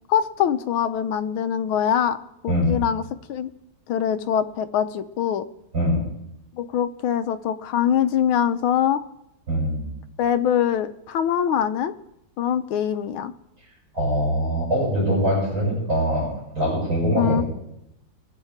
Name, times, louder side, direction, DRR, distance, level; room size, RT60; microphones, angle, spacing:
voice 1, 0.1-2.2 2.4-3.0 3.3-3.5 3.9-5.5 6.5-9.0 10.2-11.9 12.4-13.3 17.1-17.4, left 9 dB, 80° left, 10 dB, 1.6 m, -23 dB
voice 2, 2.5-2.8 5.7-6.0 9.5-9.9 13.9-16.3 16.5-17.4, equal, 70° right, -5 dB, 7.2 m, -22 dB
23.0 x 10.0 x 3.6 m, 0.84 s
omnidirectional pair, 2.3 m